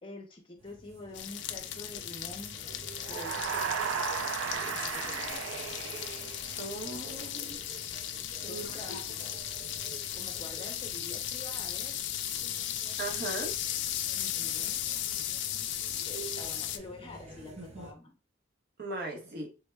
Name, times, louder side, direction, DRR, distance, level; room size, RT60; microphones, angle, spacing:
voice 1, 0.0-2.6 3.1-5.4 8.4-9.4 10.1-12.1 14.1-14.8 16.0-18.2, left 2 dB, 25° left, 3 dB, 0.6 m, -47 dB
sound 1, 0.6-17.9, right 3 dB, 35° right, 0.5 m, -50 dB
sound 2, 1.1-16.8, left 11 dB, 60° left, 0.3 m, -36 dB
sound 3, 3.0-6.8, right 7 dB, 80° right, 0.3 m, -35 dB
voice 2, 6.6-7.6 8.5-8.6 13.0-13.5 18.8-19.5, right 2 dB, 55° right, 0 dB, 1.0 m, -38 dB
3.5 x 2.1 x 3.3 m, 0.33 s
head